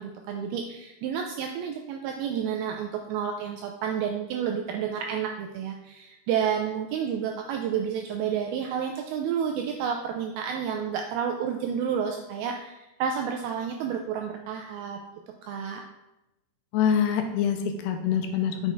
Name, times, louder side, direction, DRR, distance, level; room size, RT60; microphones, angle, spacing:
voice 1, 0.0-15.0 15.4-15.8, right 7 dB, 80° right, 3 dB, 2.2 m, -30 dB
voice 2, 16.7-18.7, left 8 dB, 80° left, 5 dB, 2.7 m, -25 dB
6.6 x 6.3 x 3.8 m, 0.96 s
omnidirectional pair, 4.8 m